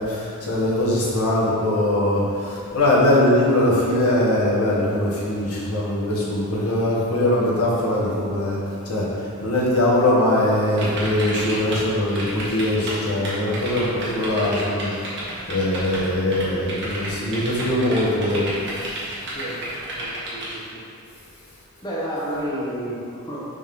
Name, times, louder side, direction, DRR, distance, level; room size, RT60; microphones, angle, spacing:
voice 1, 0.0-15.2 15.5-19.1, left 1 dB, 85° left, -6 dB, 1.5 m, -21 dB
sound 1, 10.8-11.8 12.1-13.0 13.2-16.1 16.3-20.5, right 1 dB, 55° right, 1.5 m, -31 dB
voice 2, 19.3-19.6 20.0-20.9 21.8-23.4, equal, 20° left, -7 dB, 0.9 m, -31 dB
5.2 x 3.7 x 5.3 m, 2.6 s
head